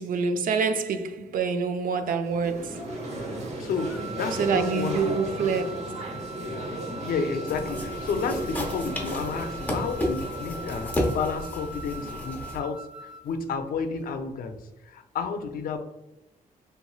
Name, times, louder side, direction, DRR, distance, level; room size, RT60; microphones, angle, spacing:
voice 1, 0.0-2.8 4.4-6.0, right 5 dB, 70° right, 0.4 m, -26 dB
sound 1, 2.2-12.2, right 1 dB, 50° right, 0.8 m, -36 dB
voice 2, 3.6-5.2 7.0-15.8, left 5 dB, 80° left, 0.5 m, -31 dB
sound 2, 3.8-13.4, right 1 dB, 5° right, 0.3 m, -41 dB
sound 3, 7.5-12.6, equal, 10° left, 0.8 m, -32 dB
3.4 x 3.1 x 2.2 m
wide cardioid pair, 165°, 15 cm